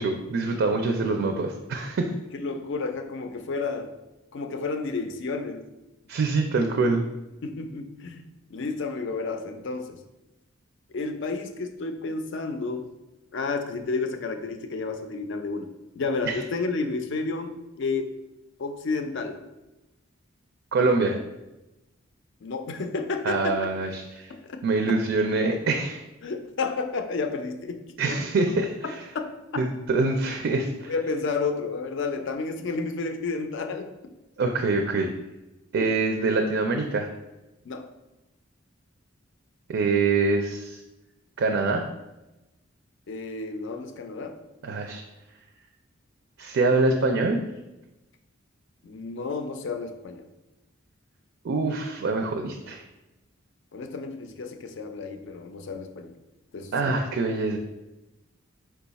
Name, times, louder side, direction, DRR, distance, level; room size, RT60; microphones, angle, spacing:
voice 1, 0.0-2.1 6.1-7.0 16.3-16.4 20.7-21.2 23.2-24.3 24.6-26.0 28.0-29.0 29.6-30.9 34.4-35.1 35.7-37.1 39.7-40.8 41.4-41.8 44.6-45.0 46.4-47.4 51.4-52.8 56.7-57.6, right 3 dB, 60° right, 3 dB, 0.4 m, -25 dB
voice 2, 2.3-3.9 4.3-5.7 7.4-8.2 8.5-10.0 10.9-12.9 13.3-18.1 18.6-19.4 22.4-23.6 24.3-24.6 26.2-28.2 28.8-29.6 30.9-34.1 35.8-35.9 37.7-37.9 43.1-44.4 48.8-50.3 53.7-56.2 56.5-57.0, left 4 dB, 65° left, 7 dB, 0.4 m, -31 dB
4.7 x 2.3 x 4.0 m, 1.0 s
head